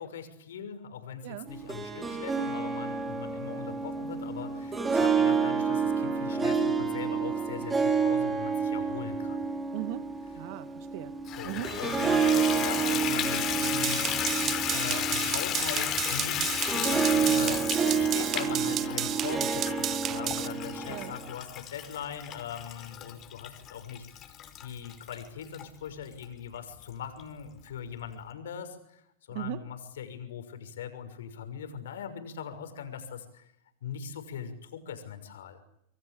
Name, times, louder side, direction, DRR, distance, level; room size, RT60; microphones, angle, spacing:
voice 1, 0.0-9.4 11.3-14.0 14.7-24.3 24.6-33.4 33.8-35.6, left 7 dB, 75° left, 9 dB, 6.3 m, -40 dB
Harp, 1.5-21.3, right 5 dB, 15° right, 6.0 m, -29 dB
voice 2, 9.7-10.0 10.3-11.1 11.4-11.7 20.9-21.1 29.3-29.6, right 16 dB, 60° right, 12 dB, 1.8 m, -37 dB
Water tap faucet / Bathtub (filling or washing), 11.3-25.6 26.2-26.3 26.8-26.9 27.2-27.3, left 10 dB, 35° left, 5.2 m, -34 dB
sound 1, 13.6-20.5, right 12 dB, 35° right, 1.0 m, -33 dB
28.0 x 23.5 x 8.6 m, 0.77 s
hypercardioid pair, 105°, 0 cm